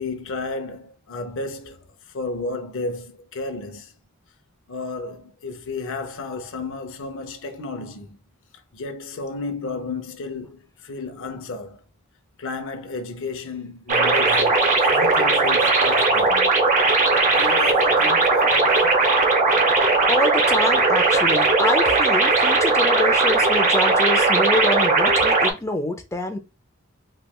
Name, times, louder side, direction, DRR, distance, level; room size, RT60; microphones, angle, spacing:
voice 1, 0.0-1.8 2.1-3.9 4.7-8.2 8.7-11.8 12.4-16.5 17.2-19.1, left 3 dB, 65° left, 0.6 m, -32 dB
sound 1, 13.9-25.5, right 3 dB, 35° right, 0.6 m, -18 dB
voice 2, 20.1-26.4, left 2 dB, 15° left, 0.5 m, -26 dB
3.2 x 3.0 x 2.3 m
head